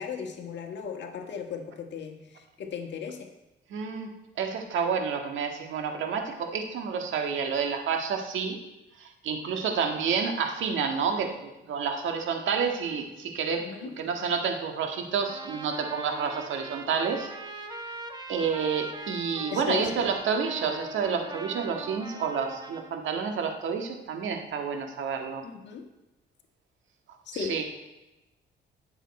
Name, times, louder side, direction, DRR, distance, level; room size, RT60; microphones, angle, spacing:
voice 1, 0.0-3.3 13.5-14.0 19.5-19.9 25.4-25.9 27.2-27.6, left 6 dB, 65° left, 4 dB, 1.5 m, -36 dB
voice 2, 3.7-4.1 4.4-8.6 9.0-17.3 18.3-25.4 27.3-27.6, right 6 dB, 75° right, 4 dB, 1.7 m, -29 dB
Trumpet, 15.2-22.9, right 2 dB, 20° right, 1.4 m, -41 dB
18.5 x 7.3 x 4.3 m, 0.98 s
cardioid pair, 90°, 20 cm